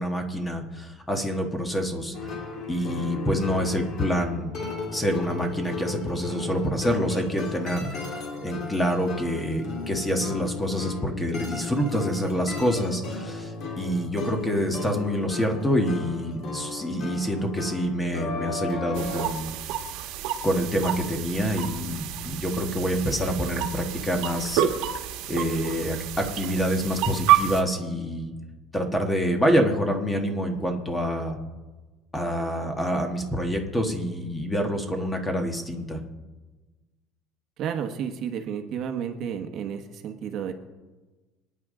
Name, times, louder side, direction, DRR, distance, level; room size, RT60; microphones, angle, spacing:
voice 1, 0.0-2.3 2.7-4.5 4.9-19.5 20.4-24.6 25.3-28.3 28.7-31.4 32.1-36.0, equal, 10° left, 4 dB, 1.4 m, -27 dB
sound 1, 2.1-19.3, left 3 dB, 40° left, 2.5 m, -35 dB
sound 2, 18.9-27.6, right 11 dB, 60° right, 1.4 m, -29 dB
voice 2, 37.6-40.5, right 8 dB, 40° right, 5 dB, 1.2 m, -31 dB
26.0 x 9.7 x 3.8 m, 1.2 s
cardioid pair, 175°, 0 cm